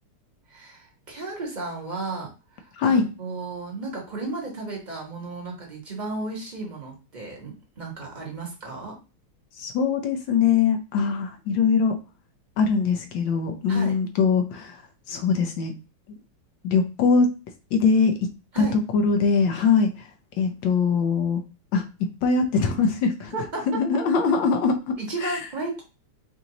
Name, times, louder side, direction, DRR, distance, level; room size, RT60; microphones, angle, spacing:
voice 1, 0.5-2.3 2.5-9.0 13.7-14.0 18.5-18.8 23.3-23.6 25.0-25.8, right 3 dB, 25° right, -1 dB, 1.1 m, -34 dB
voice 2, 9.6-12.0 12.6-14.8 15.1-15.7 16.6-17.3 17.7-18.1 18.6-20.1 20.4-21.4 21.7-21.8 22.2-23.3 23.7-25.4, left 5 dB, 70° left, 7 dB, 1.2 m, -22 dB
4.5 x 2.6 x 3.8 m, 0.31 s
omnidirectional pair, 2.4 m